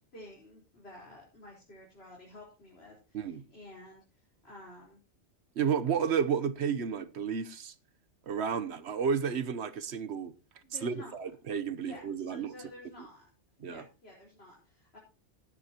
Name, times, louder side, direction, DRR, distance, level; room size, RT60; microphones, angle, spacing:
voice 1, 0.1-5.0 10.6-11.2 11.8-13.3 13.6-15.0, left 1 dB, 60° left, 4.5 m, -51 dB
voice 2, 5.6-7.7 8.3-10.3 10.8-12.5 13.6-13.8, right 7 dB, 70° right, 1.2 m, -32 dB
16.5 x 11.5 x 2.9 m
omnidirectional pair, 1.2 m